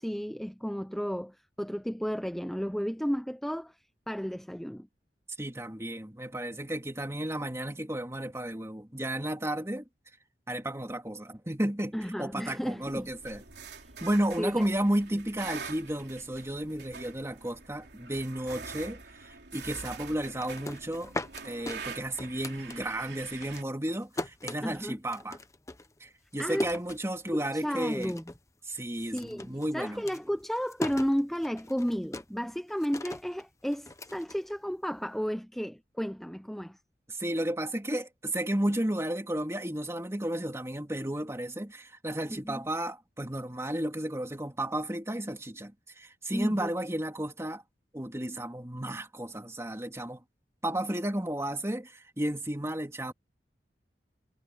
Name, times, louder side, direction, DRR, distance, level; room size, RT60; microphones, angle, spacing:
voice 1, 0.0-3.8 4.1-4.9 11.9-13.1 14.4-14.7 24.6-25.0 26.4-26.7 27.3-28.2 29.0-36.8 42.3-42.6 46.3-46.7, equal, ahead, 0.5 m, -33 dB
voice 2, 5.4-9.8 10.5-13.4 14.0-21.1 21.4-25.4 26.0-28.1 28.7-30.0 37.1-47.6 47.9-50.2 50.6-53.1, right 1 dB, 15° right, 2.5 m, -33 dB
sound 1, 12.8-23.6, right 5 dB, 75° right, 3.5 m, -45 dB
sound 2, 20.2-23.1 23.4-27.6 27.9-28.5 28.7-35.0, left 2 dB, 20° left, 0.9 m, -40 dB
head